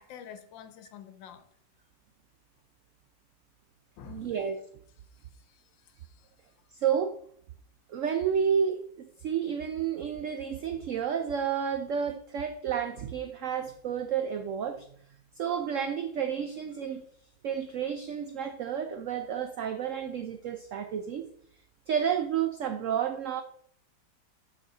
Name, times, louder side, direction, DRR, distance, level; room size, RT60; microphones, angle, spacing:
voice 1, 0.0-1.5 4.0-4.3 5.1-6.3, left 8 dB, 85° left, 1.5 m, -49 dB
voice 2, 4.0-4.7 6.8-7.2 7.9-14.9 15.4-17.0 17.4-21.3 21.9-23.4, right 8 dB, 85° right, 0.7 m, -31 dB
6.6 x 6.3 x 3.9 m
omnidirectional pair, 2.0 m